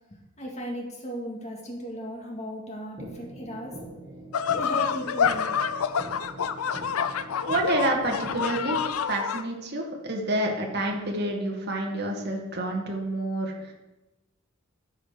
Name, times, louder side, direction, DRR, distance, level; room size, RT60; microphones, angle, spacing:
voice 1, 0.4-3.8 4.5-5.6, equal, 30° left, -1 dB, 2.0 m, -36 dB
sound 1, 3.0-9.0, right 1 dB, 25° right, 1.5 m, -43 dB
sound 2, 4.3-9.4, left 7 dB, 85° left, 0.5 m, -27 dB
voice 2, 7.5-13.7, right 1 dB, 50° right, 0 dB, 2.0 m, -28 dB
13.0 x 5.0 x 5.0 m, 1.0 s
head